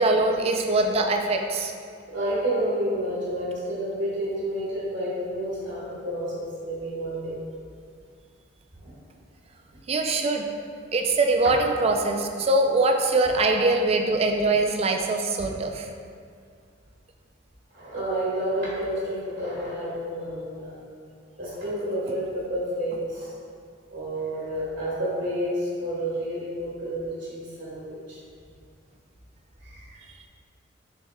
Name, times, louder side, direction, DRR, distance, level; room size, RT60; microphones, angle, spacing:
voice 1, 0.0-1.7 9.9-10.4 10.9-15.9, right 2 dB, 30° right, 4 dB, 0.3 m, -23 dB
voice 2, 2.1-7.4 8.8-8.9 17.7-20.8 21.4-23.3 23.9-28.2 29.6-30.0, right 1 dB, 45° right, -9 dB, 1.3 m, -30 dB
6.7 x 3.5 x 2.2 m, 2.2 s
head